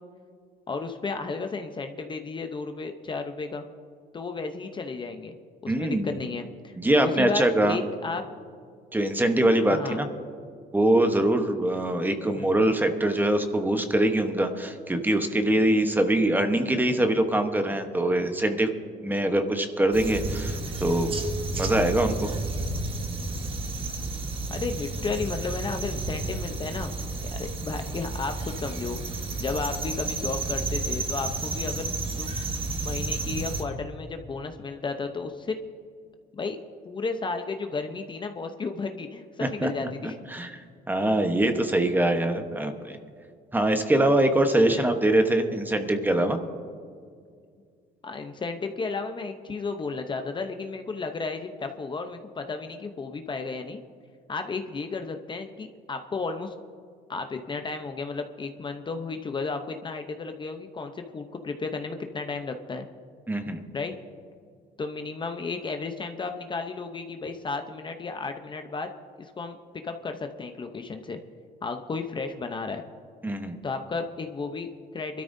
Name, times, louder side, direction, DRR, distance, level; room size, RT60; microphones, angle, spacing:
voice 1, 0.7-3.6 4.1-5.3 5.6-8.2 9.7-10.0 12.4-12.5 24.5-27.1 27.3-29.0 29.4-31.9 32.2-32.3 32.8-35.6 36.3-36.6 36.8-40.2 44.7-44.8 48.0-53.8 54.3-56.5 57.1-62.9 63.7-64.0 64.8-68.9 69.2-69.6 69.8-71.2 71.6-72.8 73.6-75.2, left 4 dB, 30° left, 6 dB, 0.8 m, -33 dB
voice 2, 5.7-6.1 6.8-7.8 8.9-10.1 10.7-18.7 19.0-21.1 21.5-22.3 39.4-39.7 40.0-43.0 43.5-46.4 63.3-63.6 73.2-73.6, right 1 dB, 10° right, 6 dB, 1.1 m, -23 dB
sound 1, 19.9-33.6, right 2 dB, 30° right, 1.4 m, -31 dB
23.5 x 13.0 x 2.7 m, 2.2 s
cardioid pair, 110°, 17 cm